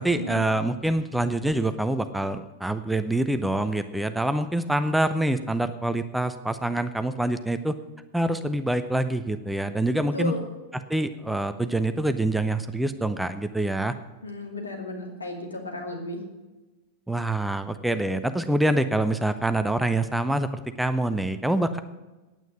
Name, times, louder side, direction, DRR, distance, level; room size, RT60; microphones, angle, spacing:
voice 1, 0.0-7.8 8.1-10.3 10.9-13.9 17.1-21.8, right 1 dB, 5° right, 10 dB, 0.6 m, -26 dB
voice 2, 9.9-10.4 14.2-16.2, left 2 dB, 75° left, 1 dB, 2.5 m, -34 dB
9.2 x 9.1 x 8.4 m, 1.1 s
figure-of-eight pair, 90°, 0 cm